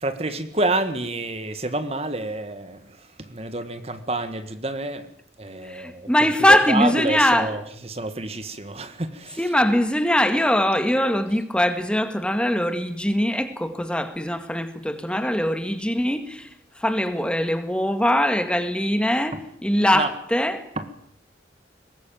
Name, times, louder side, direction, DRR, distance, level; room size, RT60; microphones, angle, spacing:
voice 1, 0.0-5.1 5.4-9.4 19.9-20.1 20.8-20.9, right 2 dB, 35° right, 1.6 m, -28 dB
voice 2, 5.6-7.6 9.4-20.7, left 1 dB, 5° left, 1.9 m, -22 dB
23.0 x 20.0 x 9.1 m
head